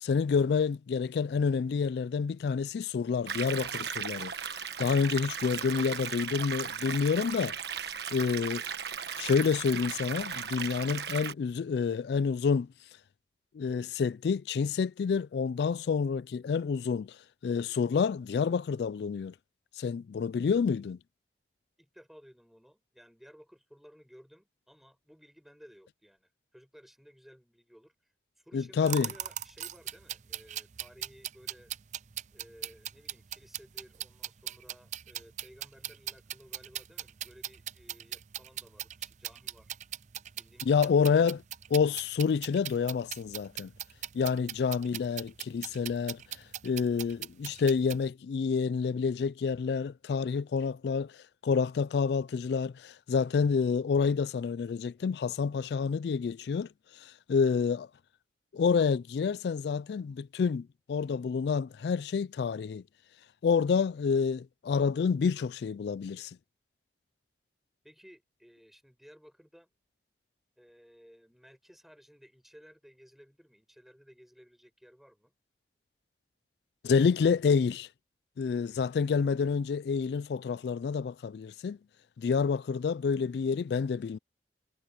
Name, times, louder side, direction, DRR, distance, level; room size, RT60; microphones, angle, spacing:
voice 1, 0.0-7.6 8.1-8.6 9.2-12.7 13.5-17.2 17.4-19.3 19.8-21.0 28.5-29.1 40.7-41.4 41.7-43.7 44.1-46.2 46.6-57.9 58.5-62.8 63.4-66.4 76.8-77.9 78.4-81.8 82.2-84.2, left 5 dB, 70° left, 0.3 m, -28 dB
sound 1, 3.3-11.3, right 7 dB, 70° right, 1.4 m, -36 dB
voice 2, 21.8-31.7 32.3-39.8 40.3-41.1 67.8-69.7 70.6-75.3, equal, ahead, 7.2 m, -57 dB
sound 2, 28.9-48.1, right 11 dB, 40° right, 0.5 m, -40 dB
head